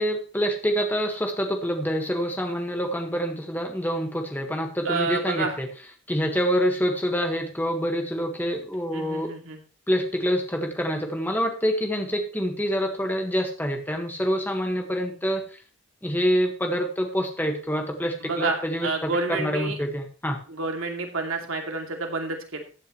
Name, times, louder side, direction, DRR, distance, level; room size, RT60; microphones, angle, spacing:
voice 1, 0.0-5.7 6.1-9.3 9.9-15.6 16.0-19.1 19.4-20.4, equal, 10° left, 4 dB, 1.6 m, -26 dB
voice 2, 4.8-5.5 8.9-9.6 18.2-19.8 20.5-22.6, right 3 dB, 80° right, 3 dB, 2.6 m, -29 dB
14.5 x 9.4 x 3.1 m, 0.35 s
head